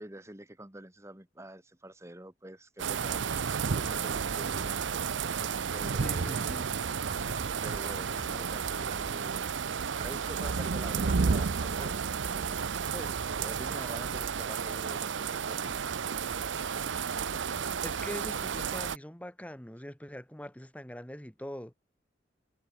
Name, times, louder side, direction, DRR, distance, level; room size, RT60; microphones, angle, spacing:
voice 1, 0.0-4.8 5.7-6.7 7.6-15.8, right 1 dB, 15° right, 1.8 m, -46 dB
sound 1, 2.8-19.0, right 6 dB, 85° right, 0.6 m, -32 dB
voice 2, 6.0-6.8 17.8-21.7, equal, 5° left, 1.4 m, -43 dB
sound 2, 7.4-7.6 8.2-8.4 8.9-9.1 10.0-10.5 11.1-11.3 11.8-12.0, right 3 dB, 35° right, 2.4 m, -47 dB
sound 3, 13.1-13.9, equal, 60° left, 6.8 m, -59 dB
head